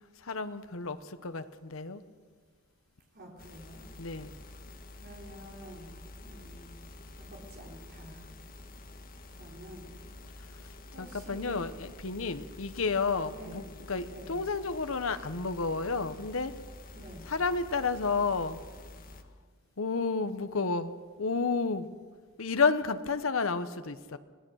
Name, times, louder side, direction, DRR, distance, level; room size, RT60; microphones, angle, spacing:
voice 1, 0.2-2.0 4.0-4.3 11.0-16.5 17.3-18.6 19.8-21.9 22.4-24.2, left 4 dB, 70° left, 11 dB, 1.0 m, -31 dB
voice 2, 3.1-3.8 5.0-5.9 6.2-6.7 7.2-8.3 9.4-9.9 10.9-11.6 13.3-13.6 14.0-14.4 16.9-17.3, equal, 50° right, -1 dB, 3.7 m, -48 dB
sound 1, 3.4-19.2, left 2 dB, 45° left, 1.6 m, -48 dB
25.0 x 17.5 x 6.5 m, 1.5 s
head